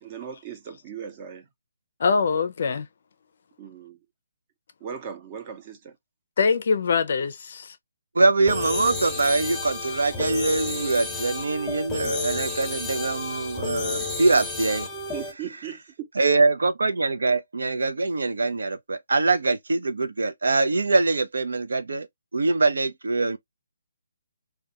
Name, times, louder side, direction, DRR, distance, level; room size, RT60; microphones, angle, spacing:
voice 1, 0.0-1.4 3.6-4.0 4.8-5.9 15.1-16.1, right 8 dB, 30° right, 0.6 m, -38 dB
voice 2, 2.0-2.9 6.4-7.8, left 5 dB, 55° left, 0.4 m, -23 dB
voice 3, 8.2-14.9 16.2-22.1 22.3-23.4, right 3 dB, 80° right, 0.5 m, -23 dB
sound 1, 8.5-15.3, left 3 dB, 10° left, 0.7 m, -31 dB
2.3 x 2.2 x 2.7 m
hypercardioid pair, 155°, 0 cm